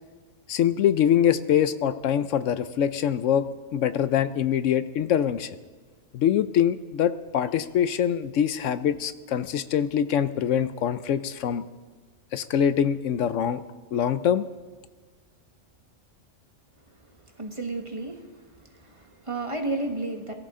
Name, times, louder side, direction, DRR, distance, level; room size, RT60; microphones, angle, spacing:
voice 1, 0.5-3.5 3.7-5.6 6.1-11.6 12.3-13.6 13.9-14.4, left 9 dB, 75° left, 13 dB, 0.9 m, -24 dB
voice 2, 17.4-18.3 18.8-20.3, right 2 dB, 25° right, 3 dB, 1.4 m, -32 dB
22.0 x 14.0 x 3.7 m, 1.4 s
omnidirectional pair, 1.3 m